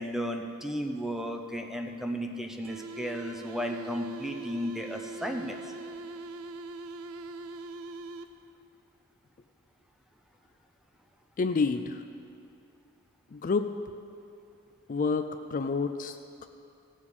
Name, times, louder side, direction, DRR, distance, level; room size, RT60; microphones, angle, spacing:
voice 1, 0.0-5.7, equal, ahead, 4 dB, 0.6 m, -34 dB
sound 1, 2.6-8.6, right 3 dB, 90° right, 0.5 m, -42 dB
voice 2, 11.4-12.0 13.3-13.7 14.9-16.5, left 4 dB, 40° left, 8 dB, 0.4 m, -29 dB
17.0 x 7.3 x 4.8 m, 2.5 s
head